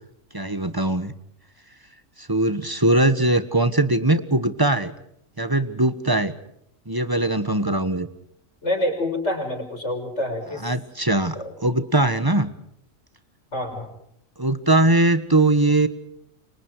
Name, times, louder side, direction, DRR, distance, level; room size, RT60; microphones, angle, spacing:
voice 1, 0.3-1.1 2.2-4.9 5.4-6.3 6.9-8.1 10.6-11.4 11.6-12.5 14.4-15.9, right 2 dB, 15° right, 12 dB, 1.3 m, -20 dB
voice 2, 8.6-10.7 11.4-11.5 13.5-13.9, left 1 dB, 55° left, 3 dB, 6.4 m, -27 dB
29.5 x 25.0 x 4.8 m, 0.74 s
omnidirectional pair, 1.4 m